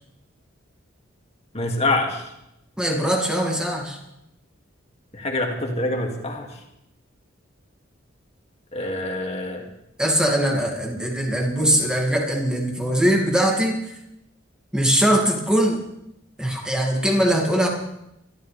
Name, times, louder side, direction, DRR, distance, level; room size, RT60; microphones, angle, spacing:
voice 1, 1.5-2.2 5.1-6.5 8.7-9.6, left 2 dB, 30° left, 1 dB, 2.5 m, -25 dB
voice 2, 2.8-4.0 10.0-13.8 14.7-15.8 16.4-17.7, equal, 5° right, 0 dB, 2.5 m, -21 dB
24.0 x 13.5 x 3.5 m, 0.83 s
head